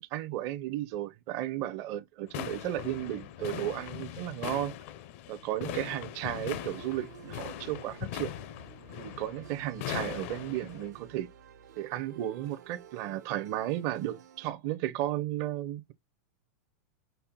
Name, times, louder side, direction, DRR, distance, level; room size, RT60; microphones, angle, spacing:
voice 1, 0.0-4.7 5.3-8.3 9.0-11.3 11.8-15.9, right 13 dB, 35° right, 0.5 m, -34 dB
sound 1, 2.3-10.9, left 12 dB, 45° left, 0.5 m, -40 dB
sound 2, 6.4-14.5, right 7 dB, 80° right, 1.0 m, -52 dB
5.4 x 2.1 x 4.3 m
supercardioid pair, 160°, 9 cm